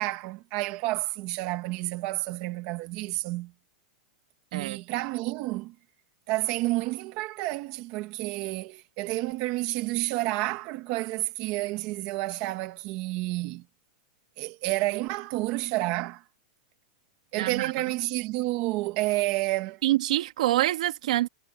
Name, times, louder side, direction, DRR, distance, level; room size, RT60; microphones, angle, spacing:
voice 1, 0.0-3.5 4.5-5.7 6.3-13.6 14.4-16.2 17.3-19.8, right 19 dB, 30° right, 1.9 m, -30 dB
voice 2, 17.4-17.7 19.8-21.3, right 15 dB, 60° right, 2.2 m, -26 dB
supercardioid pair, 180°, 4 cm